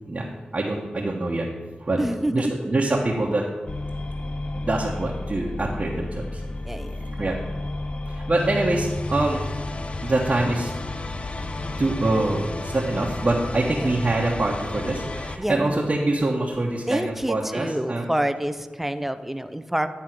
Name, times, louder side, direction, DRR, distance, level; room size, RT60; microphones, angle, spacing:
voice 1, 0.5-1.5 1.8-2.0 2.3-3.4 4.6-6.4 7.2-7.4 8.1-9.4 10.0-10.7 11.8-18.0, right 2 dB, 40° right, -3 dB, 1.0 m, -24 dB
voice 2, 2.0-2.5 6.7-7.4 13.7-14.0 15.4-15.8 16.9-19.9, right 1 dB, 5° right, 10 dB, 0.5 m, -28 dB
sound 1, 3.7-15.4, left 2 dB, 35° left, 0.5 m, -32 dB
9.2 x 3.7 x 5.9 m, 1.3 s
cardioid pair, 50°, 3 cm